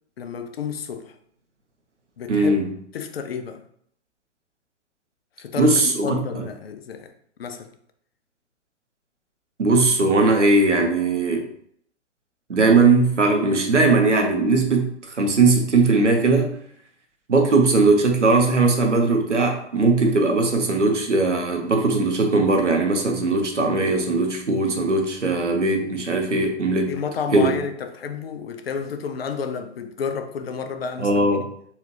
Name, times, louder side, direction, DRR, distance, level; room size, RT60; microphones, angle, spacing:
voice 1, 0.2-1.2 2.2-2.6 2.9-3.6 5.4-7.1 7.4-7.7 26.9-31.5, left 6 dB, 55° left, 0.5 m, -31 dB
voice 2, 2.3-2.7 5.6-6.2 9.6-11.5 12.5-16.6 17.3-26.9 27.3-27.5 31.0-31.5, right 3 dB, 80° right, 0.8 m, -19 dB
4.2 x 2.4 x 3.2 m
figure-of-eight pair, 115°, 35 cm